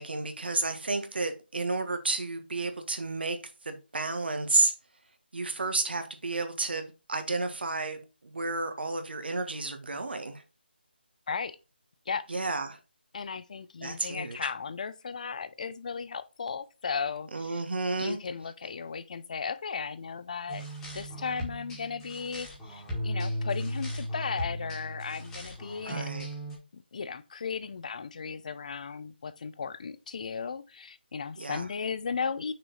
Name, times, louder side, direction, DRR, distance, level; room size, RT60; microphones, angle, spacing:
voice 1, 0.0-3.4 3.6-4.7 5.3-10.4 12.3-12.8 13.8-14.5 17.3-18.2 25.8-26.3 31.4-31.6, right 3 dB, 65° right, 1.5 m, -31 dB
voice 2, 13.1-17.5 18.0-20.7 20.9-26.1 26.7-32.5, left 5 dB, 45° left, 0.6 m, -36 dB
sound 1, 20.5-26.6, equal, 5° left, 1.6 m, -36 dB
6.1 x 4.6 x 4.1 m
figure-of-eight pair, 160°, 6 cm